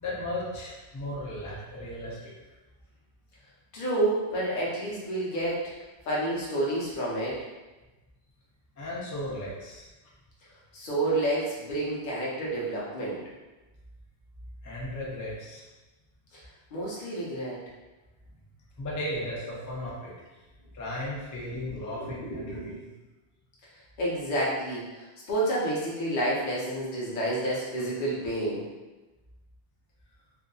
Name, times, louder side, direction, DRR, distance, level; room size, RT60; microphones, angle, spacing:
voice 1, 0.0-2.3 6.1-6.2 8.8-9.9 14.6-15.6 18.8-20.4 20.7-22.6 22.8-22.9, left 1 dB, 30° left, -5 dB, 0.3 m, -36 dB
voice 2, 3.7-5.7 6.1-7.4 10.7-13.2 16.7-17.6 21.7-22.8 24.0-28.6, right 1 dB, 50° left, -6 dB, 0.8 m, -29 dB
2.7 x 2.4 x 2.3 m, 1.1 s
omnidirectional pair, 1.1 m